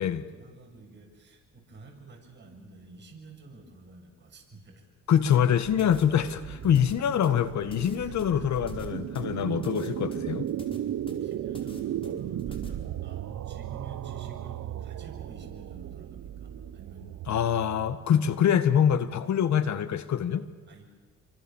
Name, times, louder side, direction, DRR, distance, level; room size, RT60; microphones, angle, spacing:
voice 1, 0.0-4.8 8.0-8.6 9.5-9.7 11.1-17.1 19.5-19.8 20.7-20.8, right 3 dB, 35° right, 7.4 m, -50 dB
voice 2, 5.1-10.4 17.3-20.5, left 9 dB, 65° left, 1.6 m, -25 dB
sound 1, 5.3-12.7, left 2 dB, 15° left, 5.0 m, -46 dB
sound 2, 5.6-18.4, right 11 dB, 65° right, 1.1 m, -36 dB
27.5 x 24.5 x 7.3 m
cardioid pair, 90°, 30 cm